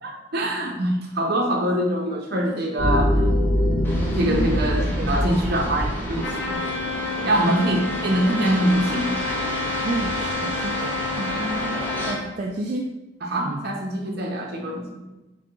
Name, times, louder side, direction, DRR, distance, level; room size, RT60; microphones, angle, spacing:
voice 1, 0.0-3.2 4.2-6.6 7.2-9.1 11.3-11.6 13.2-15.0, right 1 dB, 55° right, 0 dB, 0.8 m, -24 dB
sound 1, 2.8-10.3, equal, 30° left, 1.0 m, -26 dB
voice 2, 3.6-5.4 7.2-7.6 9.8-10.9 11.2-11.3 12.1-12.8 13.4-13.6, right 2 dB, 40° right, 0 dB, 0.3 m, -31 dB
sound 2, 3.8-12.1, equal, 10° left, 0.7 m, -32 dB
Trumpet, 6.2-12.3, left 3 dB, 65° left, 0.6 m, -29 dB
5.3 x 2.2 x 3.8 m, 1.0 s
head